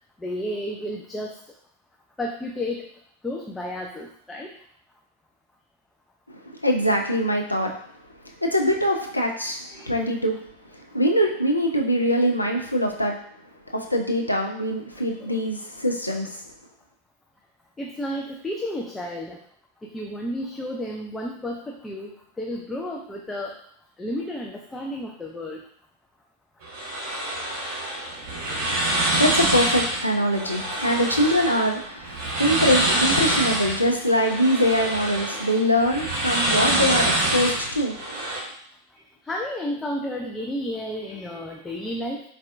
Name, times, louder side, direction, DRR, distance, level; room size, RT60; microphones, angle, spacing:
voice 1, 0.2-1.4 2.2-2.9 3.2-4.5 9.7-10.0 17.8-19.4 19.8-22.1 22.4-23.6 24.0-25.6 39.3-42.2, left 1 dB, 10° left, 0 dB, 0.3 m, -32 dB
voice 2, 6.3-7.7 8.2-10.4 10.7-13.2 13.7-16.4 28.9-38.0, equal, 85° left, 1 dB, 0.4 m, -23 dB
sound 1, 26.6-38.4, right 1 dB, 45° right, 1.1 m, -26 dB
4.1 x 2.3 x 2.5 m, 0.65 s
figure-of-eight pair, 90°, 0 cm